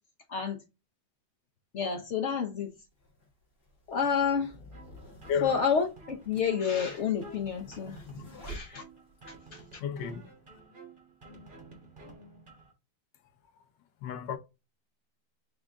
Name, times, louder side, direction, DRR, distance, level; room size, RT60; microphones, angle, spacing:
voice 1, 0.3-0.6 1.7-2.7 3.9-4.5 5.4-8.8 9.5-9.6, left 6 dB, 60° left, 0.7 m, -30 dB
sound 1, 1.9-2.0 2.9-9.3, equal, 30° left, 1.8 m, -48 dB
sound 2, 4.7-12.7, right 2 dB, 30° right, 1.5 m, -52 dB
voice 2, 9.8-10.3 13.5-13.7 14.0-14.4, left 7 dB, 75° left, 1.4 m, -33 dB
3.8 x 3.4 x 3.6 m
omnidirectional pair, 2.0 m